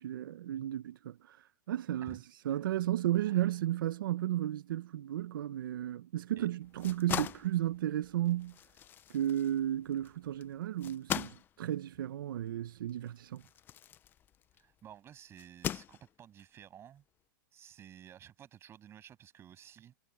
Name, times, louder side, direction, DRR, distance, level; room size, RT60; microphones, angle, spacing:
voice 1, 0.0-2.2 2.5-8.5 9.1-13.4, right 12 dB, 80° right, 0.8 m, -33 dB
voice 2, 3.2-3.6 6.4-6.5 13.4-13.5 14.6-17.0 17.5-19.9, right 10 dB, 25° right, 7.9 m, -53 dB
sound 1, 6.6-14.7 15.4-16.4, left 10 dB, 20° left, 0.4 m, -41 dB
supercardioid pair, 150°, 11 cm